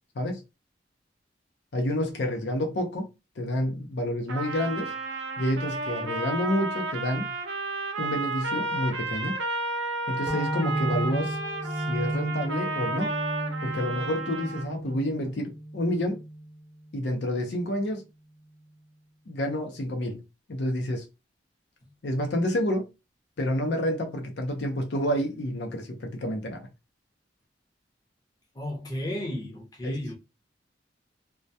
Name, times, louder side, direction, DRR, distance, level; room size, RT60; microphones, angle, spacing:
voice 1, 1.7-3.1 3.4-5.0 5.4-7.3 8.0-9.4 10.1-11.4 11.8-13.1 13.6-16.2 16.9-18.0 19.3-20.2 20.5-21.1 22.0-22.9 23.4-26.7 29.8-30.2, left 1 dB, 70° left, 0.6 m, -29 dB
Trumpet, 4.3-14.7, right 3 dB, 80° right, 0.6 m, -32 dB
sound 1, 10.3-17.6, right 1 dB, 20° right, 0.4 m, -34 dB
voice 2, 28.5-30.2, left 1 dB, 20° left, 0.7 m, -33 dB
2.2 x 2.1 x 2.6 m
head